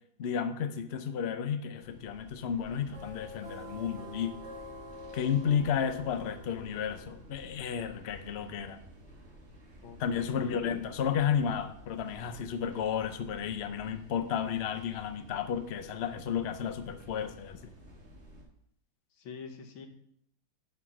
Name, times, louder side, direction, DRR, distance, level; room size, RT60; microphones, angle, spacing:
voice 1, 0.2-4.3 5.1-8.8 10.0-17.7, left 7 dB, 70° left, 9 dB, 0.6 m, -32 dB
sound 1, 1.8-18.4, left 1 dB, 35° right, 2.1 m, -50 dB
voice 2, 9.8-10.6 19.2-19.9, left 6 dB, 85° left, 6 dB, 1.9 m, -45 dB
11.0 x 4.7 x 6.0 m, 0.69 s
omnidirectional pair, 2.1 m